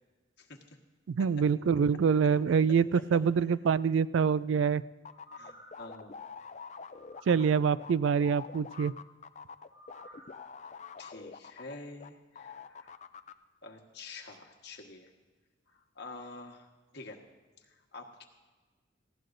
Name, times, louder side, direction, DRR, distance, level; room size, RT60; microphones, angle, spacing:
voice 1, 1.1-4.8 7.3-8.9, right 6 dB, 75° right, 18 dB, 0.3 m, -25 dB
sound 1, 5.0-12.1 12.4-13.3, left 5 dB, 35° left, 0.4 m, -46 dB
sound 2, 5.1-5.9 6.9-7.6 9.7-10.4 10.8-10.9, equal, 30° right, 4.5 m, -54 dB
voice 2, 5.3-6.2 7.4-7.5 10.1-10.2 11.0-13.0 13.6-15.1 15.7-16.7 16.9-17.2 17.6-18.2, left 3 dB, 60° left, 1 dB, 1.4 m, -48 dB
19.0 x 16.0 x 2.6 m, 1.3 s
head